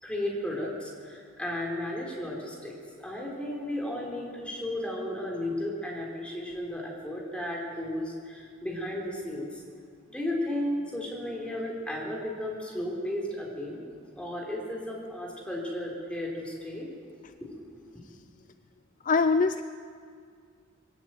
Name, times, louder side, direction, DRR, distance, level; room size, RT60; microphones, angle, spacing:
voice 1, 0.0-9.6 10.1-13.8 14.2-16.9 17.4-17.7, left 1 dB, 5° left, -1 dB, 4.2 m, -34 dB
voice 2, 19.0-19.6, left 4 dB, 40° left, 11 dB, 0.4 m, -23 dB
21.5 x 15.5 x 9.3 m, 2.2 s
head